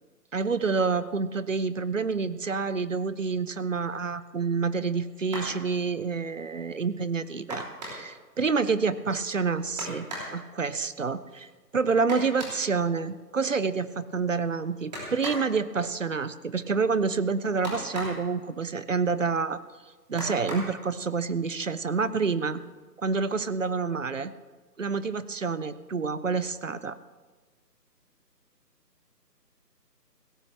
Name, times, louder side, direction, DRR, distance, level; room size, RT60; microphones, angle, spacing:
voice 1, 0.3-11.5 11.7-19.6 20.1-22.6 23.0-24.3 24.8-27.0, right 4 dB, 50° right, 15 dB, 0.6 m, -28 dB
sound 1, 5.2-5.6 7.5-8.2 9.8-10.4 12.1-12.7 14.9-15.5 17.6-18.3 20.2-20.8 21.9-22.0 22.4-22.6, equal, 25° right, 3.2 m, -36 dB
17.0 x 14.5 x 3.3 m, 1.3 s
hypercardioid pair, 175°, 49 cm